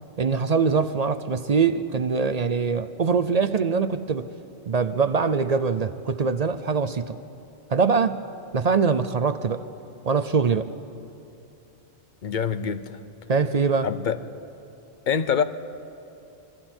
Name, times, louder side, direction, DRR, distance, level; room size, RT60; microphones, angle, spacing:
voice 1, 0.2-4.3 4.7-7.2 7.7-8.2 8.5-9.6 10.1-10.7 13.3-13.9, right 5 dB, 45° right, 0.6 m, -23 dB
voice 2, 12.2-13.0 13.8-14.2 15.1-15.4, left 7 dB, 50° left, 0.8 m, -25 dB
29.0 x 23.0 x 4.4 m
omnidirectional pair, 1.1 m